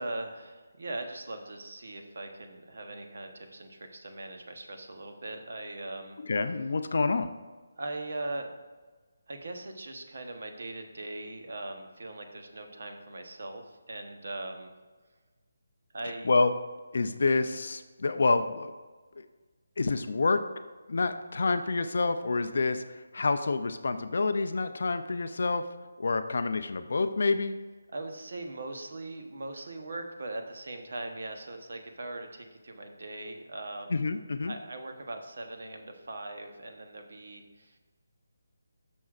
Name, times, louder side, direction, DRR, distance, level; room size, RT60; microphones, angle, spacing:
voice 1, 0.0-6.2 7.7-8.6 9.3-14.7 15.9-16.3 27.9-34.0 34.5-37.8, right 2 dB, 50° right, 5 dB, 0.9 m, -40 dB
voice 2, 6.2-7.3 16.2-16.5 16.9-18.7 19.2-19.3 19.8-20.4 20.9-25.6 26.0-27.6 33.9-34.5, left 3 dB, 45° left, 9 dB, 0.4 m, -28 dB
12.0 x 6.2 x 2.4 m, 1.3 s
hypercardioid pair, 180°, 0 cm